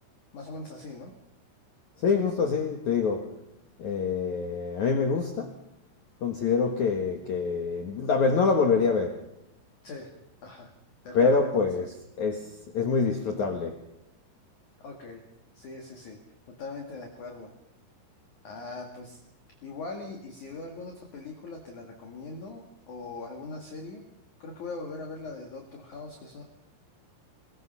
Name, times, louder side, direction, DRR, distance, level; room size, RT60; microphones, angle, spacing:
voice 1, 0.3-1.1 9.8-10.1 10.4-10.7 11.0-11.7 14.8-15.2 15.5-17.5 18.4-19.2 19.6-24.0 24.4-26.4, left 3 dB, 50° left, 1 dB, 2.9 m, -41 dB
voice 2, 2.0-3.3 3.8-5.6 6.2-9.2 11.1-13.8, left 5 dB, 65° left, 3 dB, 1.9 m, -26 dB
23.5 x 20.5 x 5.7 m, 0.84 s
omnidirectional pair, 5.6 m